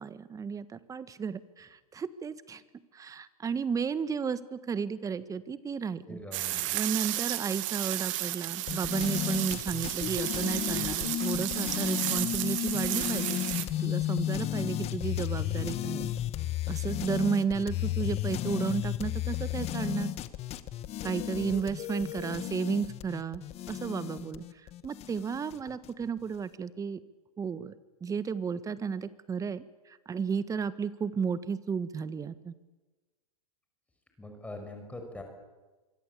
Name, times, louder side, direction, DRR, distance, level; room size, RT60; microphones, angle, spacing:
voice 1, 0.0-2.6 2.9-6.2 6.7-13.4 13.8-16.1 16.7-20.1 21.0-23.4 23.7-24.4 24.8-27.0 27.4-27.7 28.0-32.5, right 6 dB, 15° right, 14 dB, 1.5 m, -33 dB
voice 2, 6.1-6.7 34.2-35.2, left 2 dB, 5° left, 4 dB, 6.1 m, -43 dB
sound 1, 6.3-13.7, right 16 dB, 55° right, 2.4 m, -33 dB
sound 2, 8.7-25.9, left 13 dB, 35° left, 1.7 m, -33 dB
25.5 x 24.5 x 8.5 m, 1.2 s
hypercardioid pair, 115°, 19 cm